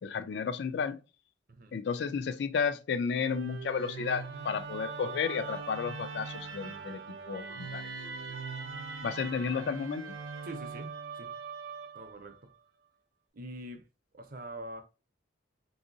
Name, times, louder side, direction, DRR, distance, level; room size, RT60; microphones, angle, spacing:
voice 1, 0.0-1.0 1.7-7.8 9.0-10.2, left 6 dB, 60° left, 0.3 m, -32 dB
voice 2, 1.5-1.8 10.4-11.3 11.9-12.4 13.3-13.9 14.1-14.8, right 1 dB, 45° right, 0.6 m, -44 dB
Musical instrument, 3.1-12.4, right 5 dB, 85° right, 0.6 m, -41 dB
3.5 x 2.7 x 2.6 m
head